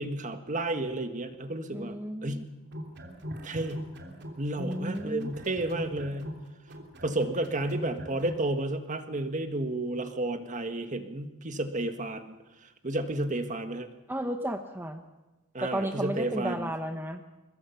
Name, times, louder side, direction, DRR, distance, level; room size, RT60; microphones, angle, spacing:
voice 1, 0.0-2.4 3.4-3.9 4.4-6.2 7.0-12.3 12.8-13.9 15.5-16.7, right 2 dB, 40° right, 8 dB, 1.6 m, -32 dB
voice 2, 1.7-2.4 4.6-5.3 14.1-15.0 15.6-17.2, right 1 dB, 10° right, 6 dB, 1.0 m, -33 dB
sound 1, 2.6-4.4 4.7-8.4, equal, 55° right, 3.0 m, -41 dB
23.0 x 21.0 x 5.9 m, 1.1 s
head